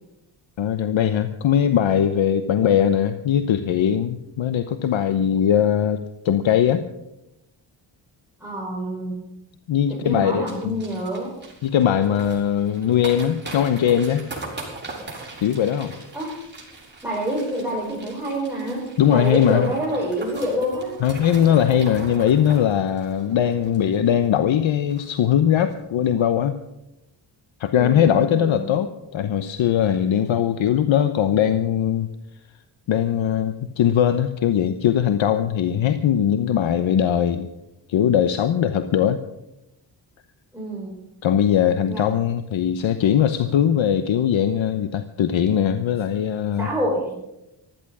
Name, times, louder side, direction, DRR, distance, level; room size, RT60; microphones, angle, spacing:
voice 1, 0.6-6.8 9.7-10.8 11.6-14.3 15.4-16.0 19.0-19.7 21.0-26.6 27.6-32.1 32.9-37.5 37.9-39.2 41.2-46.7, left 9 dB, 80° left, 10 dB, 1.0 m, -20 dB
voice 2, 8.4-9.2 9.9-11.3 16.1-16.4 17.0-21.0 27.7-28.7 40.5-41.0 41.8-42.1 46.6-47.1, equal, 5° right, -5 dB, 5.0 m, -27 dB
sound 1, 10.5-24.3 24.5-24.6 24.9-25.2 25.6-25.7, right 2 dB, 25° right, 6.6 m, -39 dB
15.0 x 14.0 x 6.2 m, 0.88 s
cardioid pair, 85°, 46 cm